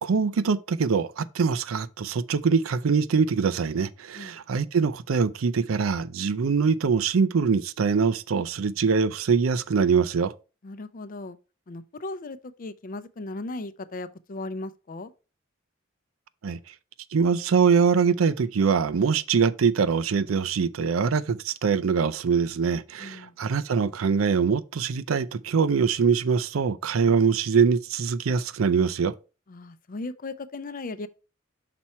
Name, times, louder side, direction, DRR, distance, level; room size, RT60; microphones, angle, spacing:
voice 1, 0.0-10.3 16.4-16.6 17.1-29.1, right 5 dB, 85° right, 0.5 m, -23 dB
voice 2, 10.6-11.4 11.7-15.1 23.0-23.3 29.5-31.1, left 2 dB, 45° left, 0.5 m, -37 dB
6.0 x 4.2 x 4.3 m
head